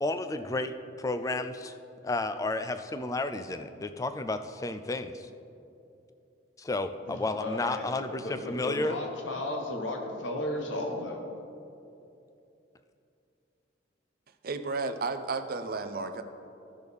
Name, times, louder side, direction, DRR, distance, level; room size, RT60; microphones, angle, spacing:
voice 1, 0.0-1.8 2.0-5.3 6.6-9.0, left 2 dB, 15° left, 9 dB, 0.3 m, -32 dB
voice 2, 7.1-11.3, left 1 dB, 80° left, 2 dB, 1.1 m, -35 dB
voice 3, 14.4-16.2, right 3 dB, 50° right, 8 dB, 0.5 m, -32 dB
14.0 x 6.3 x 3.5 m, 2.7 s
head